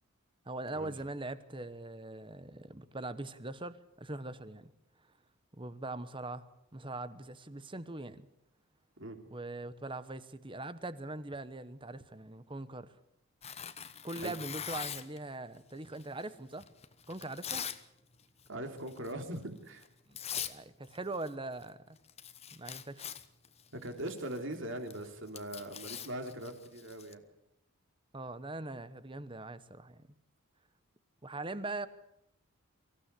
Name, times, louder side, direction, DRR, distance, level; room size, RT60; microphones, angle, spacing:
voice 1, 0.4-4.7 5.5-6.4 6.7-8.3 9.3-12.9 14.0-16.7 17.1-17.6 20.1-22.0 22.5-23.1 28.1-30.0 31.2-31.9, right 2 dB, 20° right, 13 dB, 1.1 m, -41 dB
Tearing, 13.4-15.2 15.9-17.8 18.1-18.5 18.9-19.1 19.8-19.9 20.2-20.6 20.8-21.7 22.0-27.1, left 8 dB, 30° left, 1.0 m, -42 dB
voice 2, 18.5-19.9 23.7-27.2, right 1 dB, 55° right, 5 dB, 3.4 m, -41 dB
24.5 x 16.0 x 8.4 m, 0.79 s
head